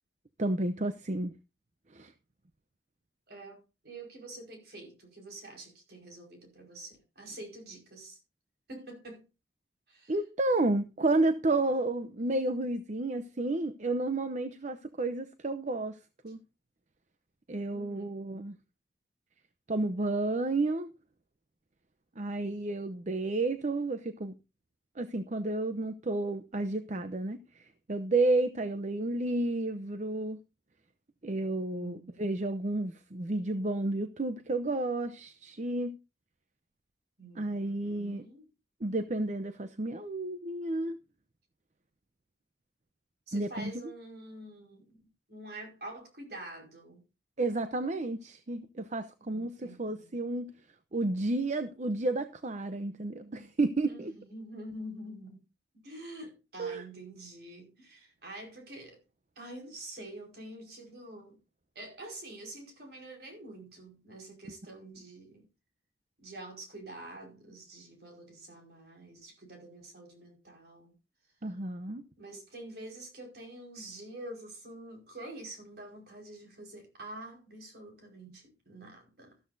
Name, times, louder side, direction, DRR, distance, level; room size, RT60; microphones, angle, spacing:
voice 1, 0.4-1.3 1.9-2.1 10.1-16.0 16.2-16.4 17.5-18.6 19.7-20.9 22.2-24.4 25.0-30.4 31.2-35.9 37.4-38.2 38.8-41.0 43.3-43.7 47.4-50.5 50.9-54.1 56.6-56.8 71.4-72.0, right 2 dB, 40° right, 0.7 m, -31 dB
voice 2, 3.3-8.2 8.7-9.2 9.9-10.1 17.7-18.1 31.7-32.2 37.2-38.4 43.3-47.0 49.2-50.2 53.9-55.5 55.8-59.0 59.3-61.4 61.7-65.5 66.2-70.9 72.2-79.4, right 1 dB, 65° right, 5.0 m, -47 dB
13.5 x 13.0 x 2.7 m
head